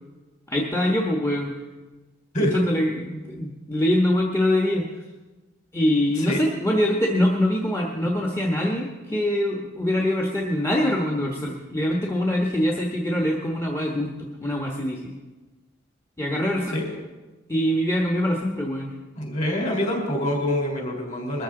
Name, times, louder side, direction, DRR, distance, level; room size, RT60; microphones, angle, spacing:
voice 1, 0.5-1.5 2.5-4.9 5.7-14.1 14.4-15.1 16.2-16.8 17.5-18.9, left 1 dB, 15° left, -1 dB, 1.2 m, -23 dB
voice 2, 19.1-21.4, left 1 dB, 40° left, 1 dB, 4.0 m, -25 dB
22.0 x 13.5 x 3.8 m, 1.2 s
head